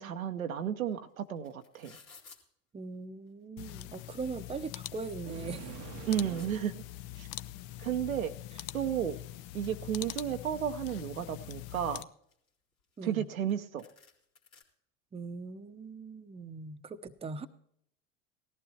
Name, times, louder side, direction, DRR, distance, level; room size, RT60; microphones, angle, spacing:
voice 1, 0.0-2.0 6.1-6.7 7.2-7.3 7.8-8.3 8.7-9.2 9.5-12.1 13.0-13.9, right 9 dB, 85° right, 8 dB, 0.8 m, -33 dB
sound 1, 0.9-1.0 1.2-2.4 3.3-3.4 3.7-4.5 5.0-5.1 5.4-6.5 7.7-7.8 8.2-8.3 8.5-10.4 10.8-11.5 12.0-13.2 13.5-13.6 13.8-14.6, left 5 dB, 85° left, 2.5 m, -58 dB
voice 2, 2.7-5.8 13.0-13.3 15.1-17.5, right 4 dB, 15° right, 9 dB, 0.7 m, -41 dB
sound 2, 3.6-12.0, left 15 dB, 50° left, 0.6 m, -43 dB
sound 3, 5.2-6.8, right 11 dB, 45° right, 0.7 m, -45 dB
18.5 x 14.5 x 2.8 m, 0.70 s
figure-of-eight pair, 75°, 40 cm